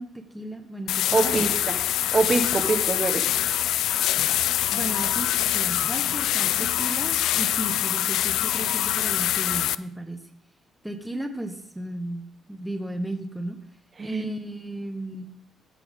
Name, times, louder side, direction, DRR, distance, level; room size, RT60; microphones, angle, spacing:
voice 1, 0.0-1.5 4.7-10.2 10.8-13.6 14.0-15.3, right 1 dB, 5° right, 4 dB, 1.1 m, -34 dB
sound 1, 0.9-9.7, left 12 dB, 85° left, 0.3 m, -24 dB
voice 2, 1.1-1.8 2.1-3.2 14.0-14.2, right 3 dB, 35° right, 7 dB, 1.2 m, -24 dB
16.0 x 5.7 x 3.7 m, 0.71 s
cardioid pair, 90°, 0 cm